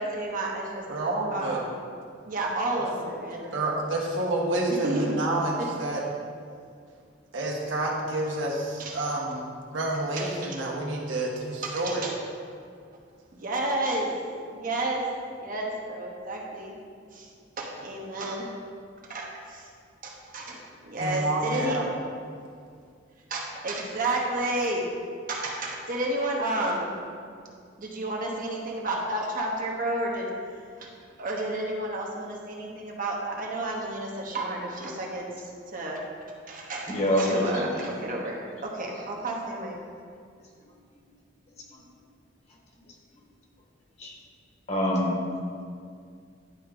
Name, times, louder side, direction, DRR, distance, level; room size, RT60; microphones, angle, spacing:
voice 1, 0.0-1.7 2.2-3.4 4.8-5.1 8.8-8.9 10.2-10.6 11.6-12.1 13.3-14.1 14.5-15.1 15.4-16.7 17.1-17.3 17.6-18.4 19.1-19.7 20.0-21.8 23.3-24.8 25.3-26.9 27.8-30.3 30.8-30.9 31.2-36.0 36.5-39.8, right 2 dB, 45° right, -1 dB, 1.0 m, -31 dB
voice 2, 0.9-1.6 3.4-6.0 7.3-12.1 21.0-21.9, right 2 dB, 75° right, -3 dB, 1.4 m, -29 dB
voice 3, 36.9-37.9 44.0-44.1 44.7-45.2, equal, 35° left, -2 dB, 1.4 m, -25 dB
10.5 x 4.6 x 3.8 m, 2.3 s
head